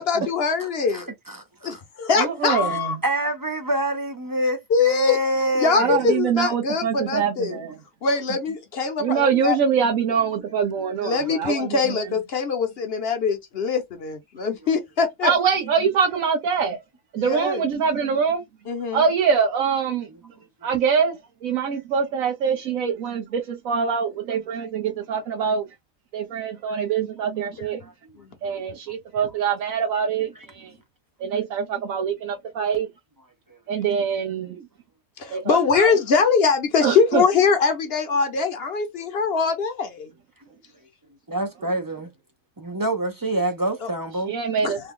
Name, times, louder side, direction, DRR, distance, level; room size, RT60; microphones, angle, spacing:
voice 1, 0.0-1.1 1.6-3.0 4.7-5.2 5.5-7.6 8.0-9.6 11.0-15.3 17.2-17.6 18.7-19.0 28.2-28.3 35.2-40.1 43.8-43.9 44.6-44.7, left 5 dB, 55° left, 0.9 m, -23 dB
voice 2, 0.6-1.8 2.6-6.0 27.8-27.9 28.5-28.6 41.3-42.1 42.6-44.3, right 1 dB, 30° right, 0.3 m, -26 dB
voice 3, 2.2-3.0 5.7-7.8 9.0-12.0 15.2-16.8 17.1-18.4 18.9-20.1 20.6-25.7 26.1-27.8 28.4-30.7 31.2-32.9 33.7-34.7 35.3-35.9 36.8-37.2 44.2-44.8, right 6 dB, 80° right, 1.2 m, -24 dB
3.3 x 2.2 x 3.6 m
omnidirectional pair, 1.4 m